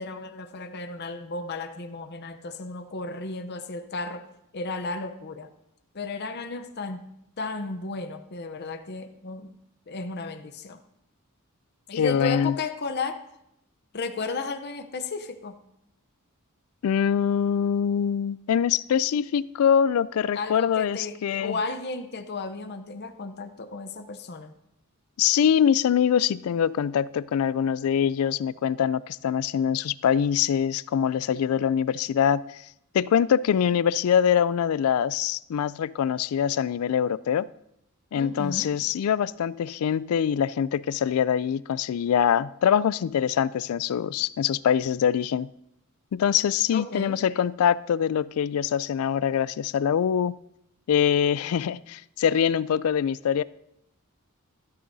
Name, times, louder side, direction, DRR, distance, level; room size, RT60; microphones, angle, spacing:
voice 1, 0.0-4.3 4.5-5.5 5.9-7.0 7.4-9.6 9.9-10.8 11.9-13.3 13.9-15.6 20.3-24.5 38.1-38.7 46.7-47.2, left 3 dB, 50° left, 7 dB, 0.7 m, -34 dB
voice 2, 12.0-12.5 16.8-21.6 25.2-32.6 32.9-37.5 38.1-45.5 46.1-50.4 50.9-53.4, left 8 dB, 75° left, 19 dB, 0.3 m, -24 dB
13.5 x 12.0 x 2.7 m, 0.80 s
head